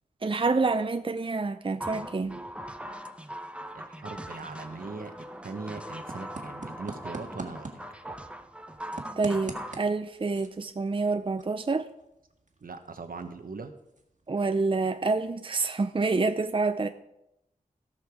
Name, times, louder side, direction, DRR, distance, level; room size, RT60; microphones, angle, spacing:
voice 1, 0.2-2.4 9.2-11.9 14.3-16.9, right 3 dB, 35° right, 8 dB, 0.6 m, -27 dB
sound 1, 1.8-9.8, equal, 5° right, 0.9 m, -41 dB
sound 2, 3.6-15.3, right 3 dB, 55° right, 1.8 m, -47 dB
voice 2, 3.7-5.1 5.4-7.8 12.6-13.7, right 4 dB, 70° right, 7 dB, 1.2 m, -40 dB
17.0 x 5.7 x 4.8 m, 0.84 s
cardioid pair, 55°, 15 cm